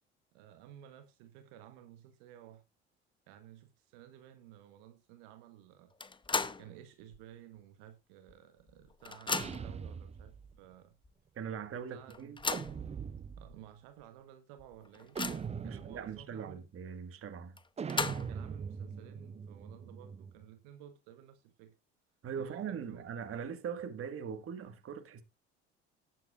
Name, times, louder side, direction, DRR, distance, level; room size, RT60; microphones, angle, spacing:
voice 1, 0.3-2.6 3.3-5.9 6.6-11.0 11.9-12.2 13.4-15.2 15.6-16.6 18.3-21.8 22.3-23.1, right 11 dB, 65° right, 1.3 m, -54 dB
sound 1, 6.0-6.7 7.1-7.2 8.3-8.4 8.7-9.8 10.5-10.6 11.0-11.1 12.1-12.8 13.5-13.6 14.0-14.1 14.6-15.6 17.6-18.5, left 4 dB, 15° left, 0.8 m, -36 dB
sound 2, 9.3-10.6 12.5-13.6 15.2-16.2 17.8-20.5, right 6 dB, 20° right, 0.6 m, -41 dB
voice 2, 11.4-12.4 15.6-17.6 22.2-25.2, right 7 dB, 40° right, 1.8 m, -41 dB
18.5 x 7.7 x 2.5 m
hypercardioid pair, 65°, 33 cm